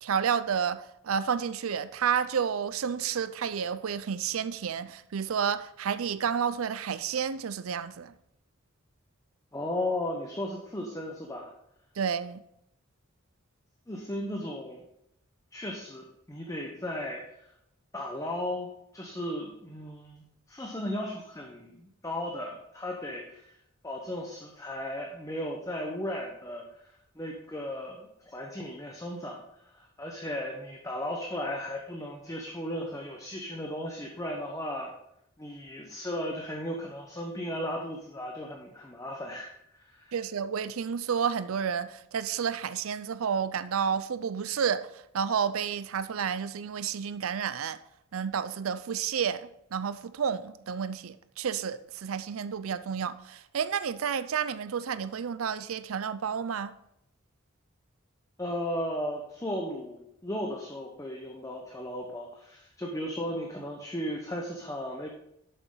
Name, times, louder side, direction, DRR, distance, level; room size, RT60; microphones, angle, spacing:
voice 1, 0.0-8.1 12.0-12.4 40.1-47.8 48.1-56.7, right 7 dB, 85° right, 0.5 m, -30 dB
voice 2, 9.5-11.5 13.9-14.8 15.5-17.5 17.9-23.5 23.8-29.4 29.7-34.9 35.4-40.1 58.4-65.1, left 1 dB, 15° left, 0.9 m, -36 dB
11.5 x 6.9 x 3.9 m
head